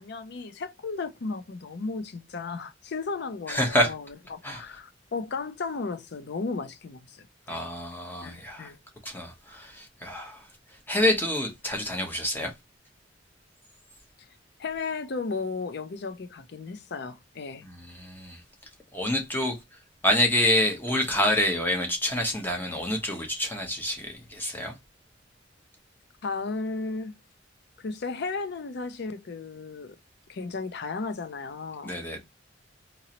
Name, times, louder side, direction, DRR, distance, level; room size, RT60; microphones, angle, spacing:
voice 1, 0.0-7.6 8.2-8.8 14.6-17.7 26.2-27.1 27.8-30.0 30.3-32.2, left 4 dB, 60° left, 0.5 m, -35 dB
voice 2, 3.5-3.9 4.4-4.6 7.5-8.7 9.0-10.5 10.9-12.5 17.6-18.4 18.9-19.6 20.0-24.7 31.8-32.2, left 1 dB, 10° left, 0.9 m, -27 dB
3.8 x 3.0 x 2.9 m
head